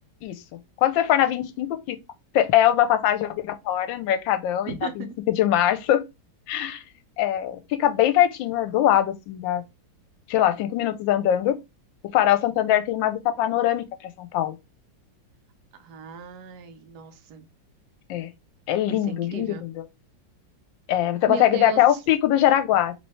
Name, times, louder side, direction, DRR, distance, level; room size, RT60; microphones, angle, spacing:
voice 1, 0.8-2.0 2.3-6.1 6.5-6.8 7.2-9.6 10.3-11.6 12.0-14.6 18.1-18.3 18.7-19.8 20.9-22.9, left 12 dB, 85° left, 1.3 m, -22 dB
voice 2, 4.7-5.1 15.8-17.4 18.9-19.6 21.3-22.0, right 5 dB, 65° right, 1.2 m, -36 dB
3.3 x 3.1 x 4.1 m
omnidirectional pair, 2.1 m